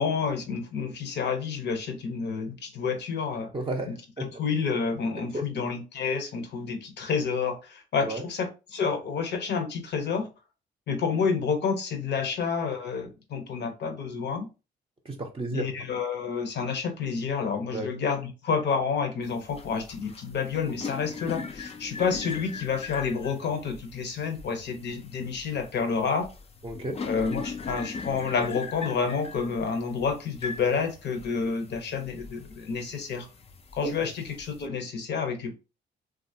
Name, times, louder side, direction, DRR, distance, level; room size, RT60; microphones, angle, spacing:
voice 1, 0.0-3.5 3.9-10.3 10.9-14.5 15.5-26.3 27.0-33.3 33.7-35.6, left 5 dB, 60° left, 6 dB, 0.8 m, -29 dB
voice 2, 3.5-3.9 4.2-4.3 5.3-5.4 8.0-8.2 15.0-15.7 17.7-17.9 26.6-27.0 33.8-33.9, right 2 dB, 25° right, 1 dB, 0.6 m, -32 dB
sound 1, 19.2-34.7, left 5 dB, 30° left, 0.5 m, -41 dB
2.8 x 2.4 x 2.7 m, 0.30 s
supercardioid pair, 60°, 20 cm